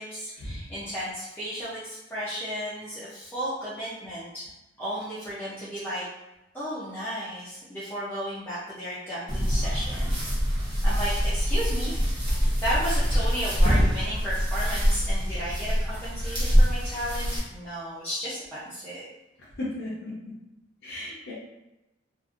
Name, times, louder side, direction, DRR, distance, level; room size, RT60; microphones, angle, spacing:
voice 1, 0.0-4.5 4.8-6.0 6.5-10.2 10.8-11.9 12.3-19.0, equal, 10° left, -11 dB, 0.6 m, -34 dB
sound 1, 9.3-17.4, equal, 25° right, 0.8 m, -24 dB
voice 2, 19.8-20.3 20.8-21.3, left 1 dB, 65° left, -8 dB, 0.7 m, -37 dB
2.7 x 2.5 x 2.5 m, 0.94 s
head